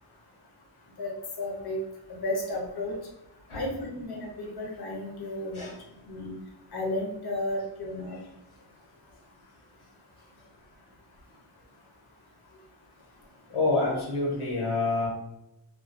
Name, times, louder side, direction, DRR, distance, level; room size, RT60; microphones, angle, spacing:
voice 1, 1.4-1.8 2.2-2.9 3.5-5.6 6.1-6.3 6.7-8.2, left 1 dB, 50° left, -1 dB, 0.7 m, -33 dB
voice 2, 13.5-15.1, left 3 dB, 90° left, -4 dB, 0.9 m, -27 dB
2.3 x 2.3 x 2.4 m, 0.89 s
wide cardioid pair, 65°, 49 cm